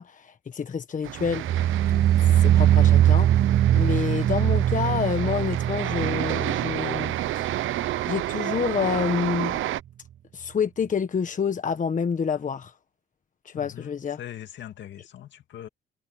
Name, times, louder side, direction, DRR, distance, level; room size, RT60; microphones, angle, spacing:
voice 1, 0.0-3.3 3.7-7.5 8.1-9.6 10.3-12.7 13.4-14.2, left 6 dB, 40° left, 1.4 m, -28 dB
sound 1, 1.0-9.8, right 14 dB, 80° right, 1.0 m, -31 dB
sound 2, 1.2-8.3 8.6-9.0 9.4-9.5, right 11 dB, 50° right, 0.4 m, -22 dB
voice 2, 13.5-15.7, left 11 dB, 70° left, 2.3 m, -41 dB
cardioid pair, 90°, 20 cm